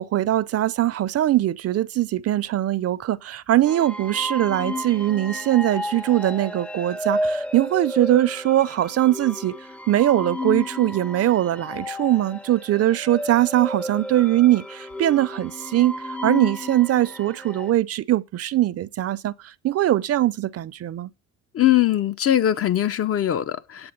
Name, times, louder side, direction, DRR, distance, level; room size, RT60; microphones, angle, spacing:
voice 1, 0.0-9.5 9.9-21.1, right 13 dB, 55° right, 0.6 m, -21 dB
sound 1, 3.7-17.7, left 1 dB, 5° left, 0.5 m, -32 dB
voice 2, 21.5-23.9, left 12 dB, 50° left, 0.8 m, -21 dB
8.8 x 7.8 x 5.2 m
supercardioid pair, 75°, 29 cm